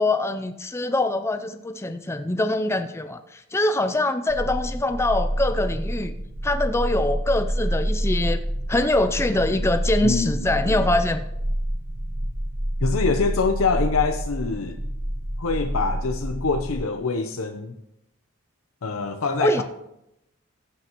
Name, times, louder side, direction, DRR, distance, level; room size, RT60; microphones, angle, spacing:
voice 1, 0.0-6.1 6.4-11.2 19.4-19.6, left 2 dB, 15° left, 9 dB, 0.4 m, -24 dB
sound 1, 4.3-16.8, equal, 40° right, 4.0 m, -28 dB
voice 2, 12.8-14.8 15.4-17.8 18.8-19.6, left 4 dB, 90° left, 5 dB, 0.7 m, -25 dB
15.5 x 8.0 x 3.0 m, 0.83 s
head